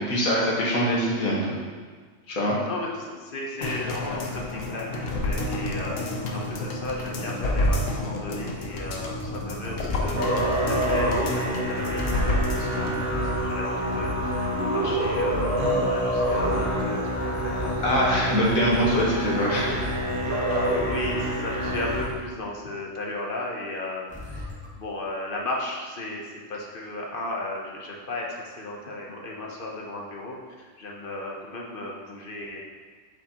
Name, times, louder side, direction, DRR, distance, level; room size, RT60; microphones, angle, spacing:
voice 1, 0.0-1.6 2.3-2.6 3.6-3.7 17.8-19.9 20.2-20.7, equal, 90° left, -4 dB, 1.7 m, -24 dB
voice 2, 2.6-14.4 14.6-17.0 17.3-18.0 20.7-24.5 24.7-32.6, left 2 dB, 45° left, -1 dB, 1.0 m, -35 dB
sound 1, 3.6-13.0 13.4-13.5, left 1 dB, 70° left, 1.2 m, -29 dB
sound 2, 7.9-22.3 24.1-24.7, left 2 dB, 5° left, 0.7 m, -36 dB
Musical instrument, 10.1-22.0, equal, 45° right, 1.3 m, -27 dB
7.4 x 5.1 x 2.9 m, 1.5 s
omnidirectional pair, 1.4 m